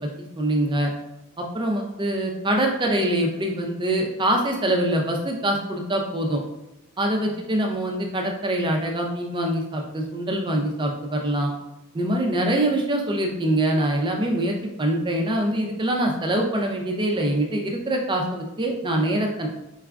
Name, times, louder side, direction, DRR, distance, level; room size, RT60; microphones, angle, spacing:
voice 1, 0.0-0.9 1.4-6.4 7.0-11.5 11.9-19.5, right 1 dB, 25° right, 1 dB, 0.4 m, -24 dB
4.6 x 2.2 x 2.4 m, 0.92 s
head